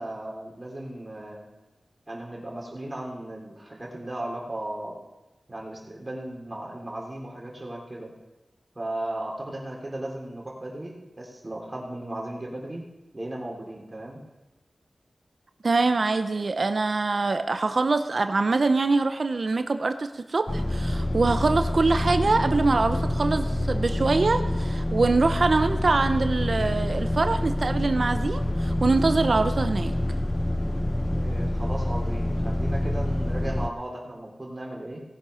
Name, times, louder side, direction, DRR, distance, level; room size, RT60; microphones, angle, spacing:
voice 1, 0.0-1.5 2.1-5.0 5.5-8.1 8.8-12.8 13.1-14.2 31.1-35.0, right 1 dB, 35° right, -1 dB, 3.6 m, -36 dB
voice 2, 15.6-29.9, right 3 dB, 60° right, 8 dB, 0.8 m, -24 dB
sound 1, 20.5-33.7, left 1 dB, 20° left, 0.8 m, -27 dB
18.0 x 8.0 x 5.7 m, 1.1 s
cardioid pair, 45°, 0 cm